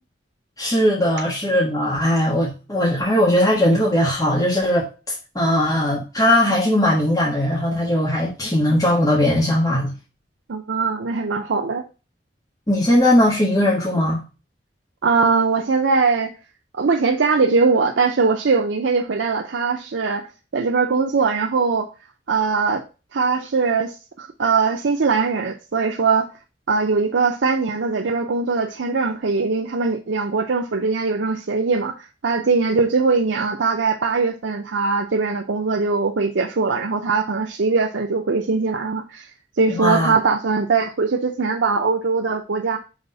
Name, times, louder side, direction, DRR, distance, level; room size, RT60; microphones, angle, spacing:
voice 1, 0.6-9.9 12.7-14.2 39.7-40.1, left 1 dB, 20° left, 1.4 m, -19 dB
voice 2, 10.5-11.8 15.0-16.3 16.8-20.3 20.5-21.9 22.3-22.8 23.1-26.3 26.7-39.3 39.6-42.8, right 4 dB, 85° right, 0.6 m, -21 dB
5.8 x 3.5 x 5.4 m
head